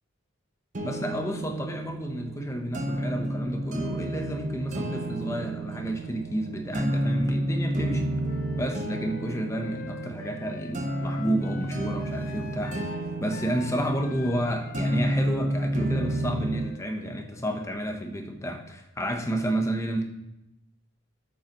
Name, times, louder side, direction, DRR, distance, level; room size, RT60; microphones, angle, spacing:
sound 1, 0.7-16.7, right 1 dB, 35° right, 0.8 m, -31 dB
voice 1, 0.8-8.0 8.6-20.0, right 1 dB, 15° left, 4 dB, 0.8 m, -31 dB
Wind instrument woodwind instrument, 8.2-18.0, left 5 dB, 45° left, 0.5 m, -45 dB
8.8 x 7.8 x 3.0 m, 0.90 s
head